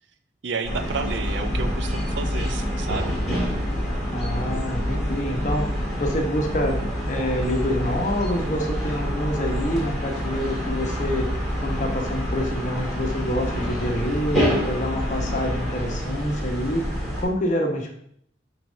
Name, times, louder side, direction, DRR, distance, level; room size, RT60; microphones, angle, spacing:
voice 1, 0.4-3.1, right 4 dB, 75° right, 9 dB, 0.6 m, -31 dB
sound 1, 0.6-17.2, equal, ahead, 2.0 m, -27 dB
voice 2, 4.1-5.6 6.0-6.8 7.1-11.3 11.6-16.8 17.2-17.9, equal, 40° left, 1 dB, 1.0 m, -27 dB
6.0 x 3.5 x 5.1 m, 0.69 s
head